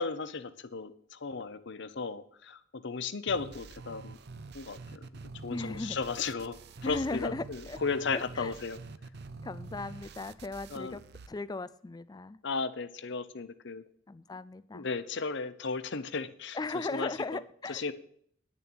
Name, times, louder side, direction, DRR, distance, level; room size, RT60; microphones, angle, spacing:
voice 1, 0.0-4.2 4.5-5.1 5.4-6.6 6.8-8.8 10.7-11.0 12.4-13.8 14.7-17.4 17.7-17.9, left 4 dB, 60° left, 13 dB, 0.7 m, -35 dB
sound 1, 3.3-11.3, right 3 dB, 50° right, 0.5 m, -46 dB
voice 2, 5.5-6.0 6.8-7.8 8.1-8.5 9.4-11.0 11.3-12.4 14.1-14.9 16.5-17.8, left 3 dB, 20° left, 16 dB, 0.3 m, -37 dB
10.5 x 7.0 x 6.1 m, 0.63 s
head